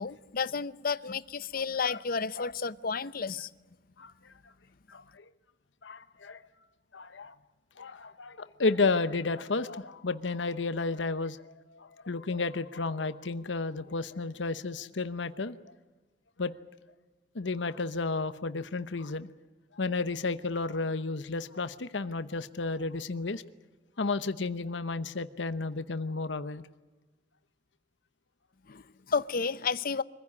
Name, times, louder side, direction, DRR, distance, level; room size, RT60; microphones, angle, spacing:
voice 1, 0.0-3.5 28.7-30.0, left 5 dB, 55° left, 0.7 m, -32 dB
voice 2, 4.0-4.3 4.9-5.2 5.8-6.4 6.9-7.3 7.8-15.5 16.4-16.5 17.3-19.3 19.8-23.4 24.0-26.6, left 3 dB, 85° left, 1.0 m, -32 dB
24.5 x 16.0 x 9.6 m
head